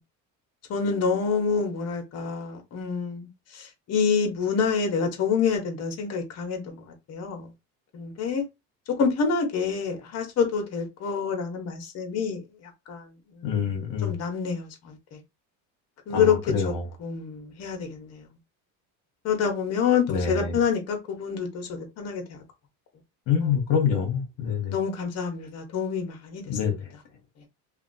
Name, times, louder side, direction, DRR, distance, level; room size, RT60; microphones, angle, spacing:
voice 1, 0.7-3.3 3.9-6.6 7.1-7.4 7.9-8.4 9.0-12.4 12.9-13.0 14.0-14.9 16.1-16.4 17.0-18.2 19.2-21.7 22.0-22.2 24.7-26.4, left 6 dB, 45° left, 1.0 m, -26 dB
voice 2, 13.4-14.2 16.1-16.9 20.1-20.6 23.3-24.8 26.5-26.9, left 7 dB, 65° left, 0.9 m, -26 dB
2.7 x 2.3 x 2.6 m
cardioid pair, 135°, 36 cm